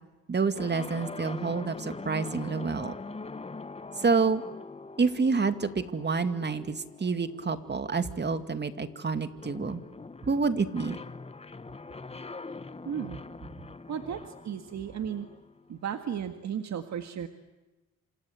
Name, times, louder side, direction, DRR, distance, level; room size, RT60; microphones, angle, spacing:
voice 1, 0.3-2.9 4.0-4.4 5.0-9.8 10.2-11.0, right 4 dB, 35° right, 10 dB, 2.3 m, -28 dB
sound 1, 0.5-16.3, left 3 dB, 20° left, 1.2 m, -43 dB
voice 2, 12.8-13.2 13.9-15.3 15.7-17.3, right 8 dB, 65° right, 7 dB, 1.9 m, -34 dB
27.5 x 27.0 x 8.1 m, 1.1 s
cardioid pair, 85°, 29 cm